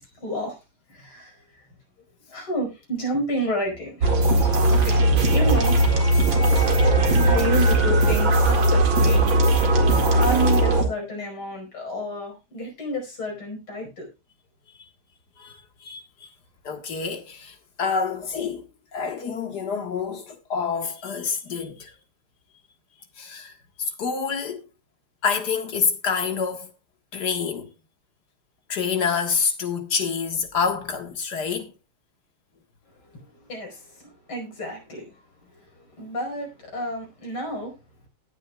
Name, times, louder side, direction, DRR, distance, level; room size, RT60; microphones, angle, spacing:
voice 1, 0.1-0.6 0.9-1.7 2.3-5.0 5.3-5.8 6.8-9.3 10.1-14.1 33.0-37.7, equal, 75° left, 5.9 m, -31 dB
symphoid mashup, 4.0-10.8, right 1 dB, 65° right, 2.9 m, -18 dB
voice 2, 15.4-16.3 16.6-21.9 23.2-23.5 23.8-24.6 25.2-26.7 27.1-27.7 28.7-31.7, left 6 dB, 50° left, 2.1 m, -27 dB
19.5 x 9.2 x 2.3 m
omnidirectional pair, 2.4 m